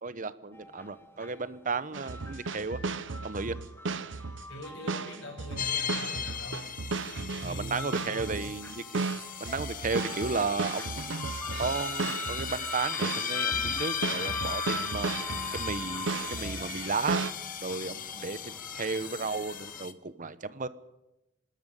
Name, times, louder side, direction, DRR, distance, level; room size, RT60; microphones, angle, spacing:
voice 1, 0.0-2.8 3.2-3.6 7.4-9.0 9.4-11.1 11.6-15.1 15.5-17.2 17.6-20.7, right 4 dB, 45° right, 14 dB, 1.0 m, -34 dB
sound 1, 0.5-19.9, left 1 dB, 15° left, 1.2 m, -43 dB
sound 2, 1.9-17.3, right 4 dB, 80° right, 0.8 m, -35 dB
voice 2, 4.5-6.8 7.4-8.5, equal, 70° left, -5 dB, 6.3 m, -42 dB
sound 3, 5.6-19.9, left 8 dB, 45° left, 1.2 m, -37 dB
26.0 x 13.0 x 9.3 m, 0.94 s
head